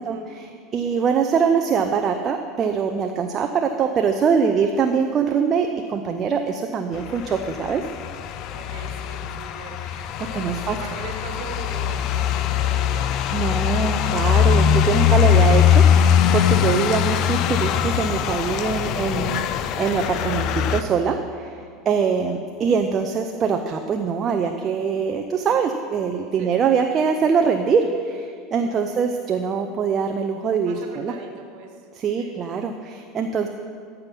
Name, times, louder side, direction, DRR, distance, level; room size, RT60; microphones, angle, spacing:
voice 1, 0.0-7.8 9.8-10.8 13.3-19.4 19.8-31.1 31.9-33.5, right 6 dB, 35° right, 5 dB, 0.6 m, -23 dB
sound 1, 7.0-20.8, left 9 dB, 50° left, 0.5 m, -21 dB
voice 2, 8.5-9.8 10.6-13.1 18.7-19.1 26.4-26.6 28.6-29.0 30.6-31.9 32.2-32.4, right 5 dB, 55° right, 3 dB, 1.5 m, -40 dB
14.0 x 5.8 x 5.3 m, 2.2 s
figure-of-eight pair, 75°, 0 cm